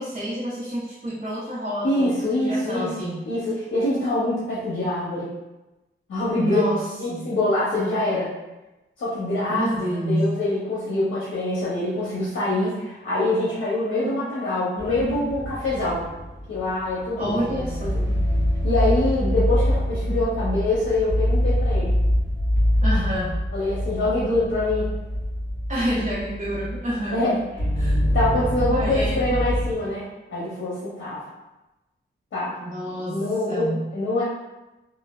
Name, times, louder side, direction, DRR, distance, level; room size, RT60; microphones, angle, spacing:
voice 1, 0.0-3.2 6.4-7.3 9.5-10.4 17.2-18.2 22.8-23.4 25.7-27.2 27.8-28.0 28.7-29.4 32.6-33.9, equal, 35° right, -10 dB, 0.7 m, -28 dB
voice 2, 1.8-5.3 6.1-6.6 7.0-8.3 9.0-9.7 10.1-16.0 16.5-17.4 17.8-18.0 18.6-21.9 23.5-24.9 27.1-27.4 28.1-31.2 32.3-32.6 32.9-34.2, left 2 dB, 90° left, -8 dB, 0.7 m, -25 dB
sound 1, 14.8-27.3 27.6-29.7, equal, 25° left, 1.4 m, -25 dB
3.2 x 2.2 x 2.2 m, 1.0 s
cardioid pair, 65°, 20 cm